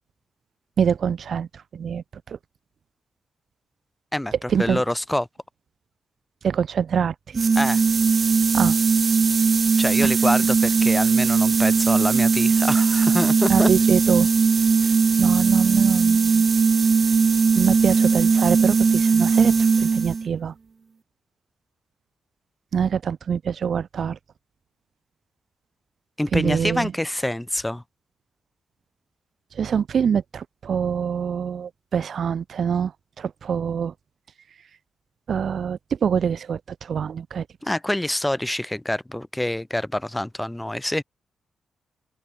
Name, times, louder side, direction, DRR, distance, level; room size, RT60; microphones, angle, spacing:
voice 1, 0.8-2.4 4.5-4.8 6.4-7.2 8.5-8.8 10.0-10.1 13.5-14.3 14.8-16.4 17.5-20.5 22.7-24.2 26.3-26.9 29.5-33.9 35.3-37.5, right 7 dB, 65° right, 7.0 m, -25 dB
voice 2, 4.6-5.3 7.6-7.8 9.8-13.7 26.2-27.8 37.6-41.0, left 1 dB, 10° left, 7.6 m, -26 dB
sound 1, 7.3-20.3, right 5 dB, 45° right, 3.3 m, -19 dB
open air
cardioid pair, 70°, 0 cm